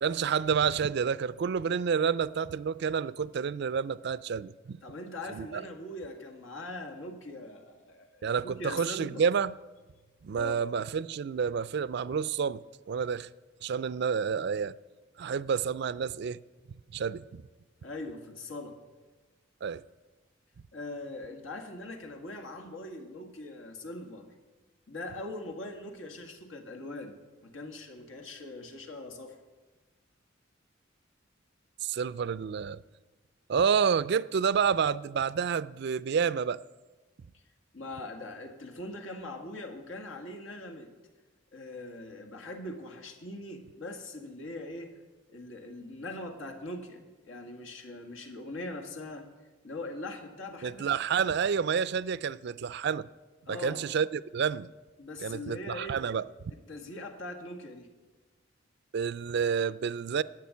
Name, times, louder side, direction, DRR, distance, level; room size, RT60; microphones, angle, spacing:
voice 1, 0.0-4.8 5.3-5.6 8.2-9.6 10.2-13.3 13.6-14.8 15.2-16.4 16.9-17.4 19.6-19.8 31.8-32.8 33.5-36.6 50.6-53.1 53.5-54.7 55.2-56.2 58.9-60.2, right 6 dB, 60° right, 0.4 m, -29 dB
voice 2, 4.8-9.2 10.3-10.6 17.8-18.8 20.7-24.3 24.9-29.4 37.7-40.9 41.5-45.0 45.3-49.3 49.6-51.3 53.5-53.9 55.0-56.1 56.7-57.9, left 2 dB, 90° left, 1.8 m, -41 dB
11.5 x 7.9 x 9.5 m
head